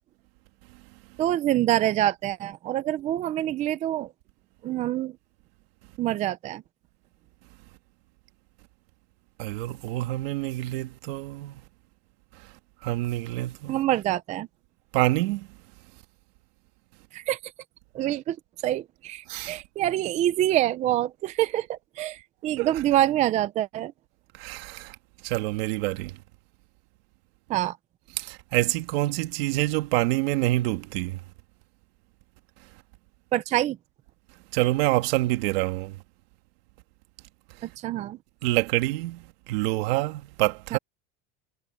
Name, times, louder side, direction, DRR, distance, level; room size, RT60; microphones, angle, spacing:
voice 1, 1.2-4.1 4.6-5.1 6.0-6.6 13.7-14.5 17.1-17.4 17.9-18.4 18.6-23.9 27.5-27.8 33.3-33.8 37.8-38.2 40.7-40.8, right 13 dB, 25° right, 0.5 m, -26 dB
voice 2, 9.4-11.6 12.8-13.8 14.9-15.5 19.3-19.6 22.6-22.7 24.3-25.0 25.2-26.2 28.2-31.2 34.5-36.0 38.4-40.8, right 18 dB, 90° right, 2.0 m, -27 dB
cardioid pair, 175°, 29 cm